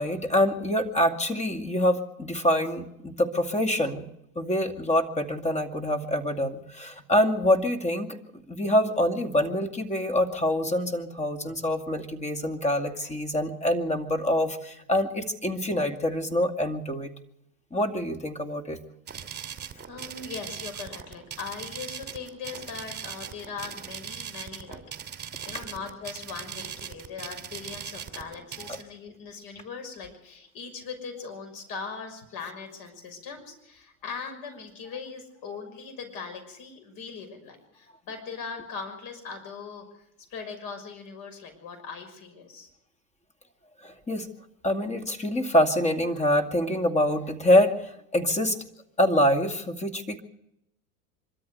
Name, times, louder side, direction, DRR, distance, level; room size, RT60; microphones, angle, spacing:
voice 1, 0.0-4.0 4.4-8.2 8.5-17.1 17.7-18.8 43.8-44.3 44.6-48.6 49.0-50.2, left 1 dB, 15° left, 7 dB, 2.3 m, -25 dB
sound 1, 19.1-28.8, right 8 dB, 25° right, 2.8 m, -40 dB
voice 2, 19.8-24.8 25.5-40.0 40.3-42.7, left 5 dB, 55° left, 7 dB, 6.1 m, -40 dB
24.5 x 13.5 x 8.0 m, 0.82 s
hypercardioid pair, 95°, 43 cm